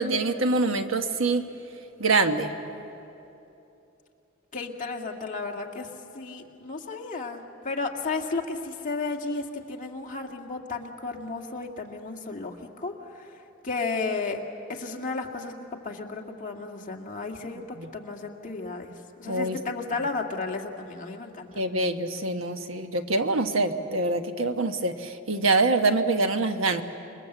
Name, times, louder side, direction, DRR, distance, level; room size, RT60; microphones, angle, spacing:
voice 1, 0.0-1.4 2.0-2.5 17.8-17.9 19.3-19.6 21.6-26.8, right 3 dB, 75° right, 7 dB, 1.3 m, -25 dB
voice 2, 4.5-5.9 6.1-14.4 14.7-15.5 15.8-18.9 19.2-21.5, left 3 dB, 40° left, 1 dB, 2.0 m, -33 dB
28.0 x 22.0 x 8.0 m, 2.8 s
head